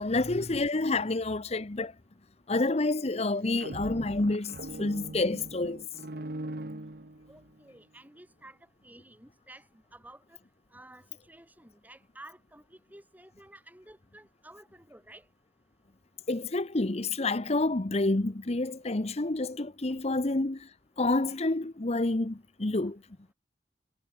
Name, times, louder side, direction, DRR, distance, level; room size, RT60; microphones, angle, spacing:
voice 1, 0.0-1.9 2.5-5.9 16.3-20.7 21.0-23.0, left 2 dB, 35° left, 0.9 m, -29 dB
sound 1, 3.3-7.6, right 1 dB, 60° right, 1.6 m, -41 dB
voice 2, 7.3-10.4 10.7-15.3, right 1 dB, 10° right, 5.3 m, -53 dB
head